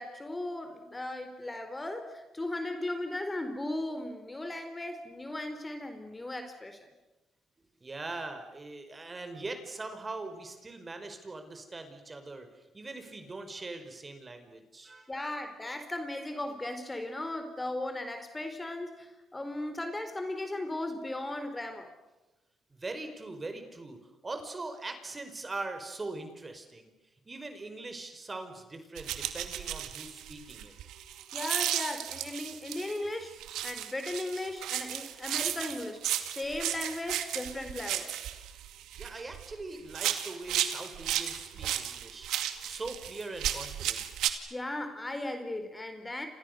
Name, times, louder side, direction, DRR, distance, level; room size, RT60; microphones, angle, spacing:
voice 1, 0.0-6.9 15.1-21.9 31.3-33.4 33.6-36.0 36.3-38.2 44.5-46.3, left 1 dB, 15° left, 7 dB, 4.1 m, -37 dB
voice 2, 7.8-15.3 22.7-26.9 27.3-30.7 39.0-44.0, right 3 dB, 25° right, 7 dB, 5.1 m, -41 dB
sound 1, 29.0-33.0 33.4-39.5 39.9-44.3, right 11 dB, 85° right, 2.2 m, -34 dB
30.0 x 28.0 x 6.8 m, 1.0 s
cardioid pair, 90°, 0 cm